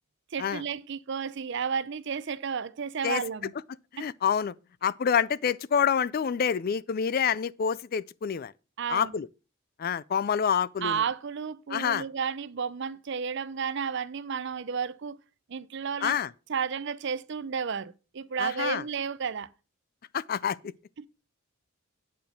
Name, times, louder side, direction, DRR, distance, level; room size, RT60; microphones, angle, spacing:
voice 1, 0.3-3.5 4.0-4.1 8.8-9.2 10.8-15.2 15.5-16.2 16.5-19.5 21.0-21.1, right 6 dB, 55° right, 0.5 m, -32 dB
voice 2, 3.9-4.5 4.8-8.5 8.9-9.3 9.8-11.0 11.7-12.0 16.0-16.3 18.4-18.8 20.1-20.7, left 7 dB, 45° left, 0.3 m, -27 dB
9.3 x 5.2 x 5.9 m
head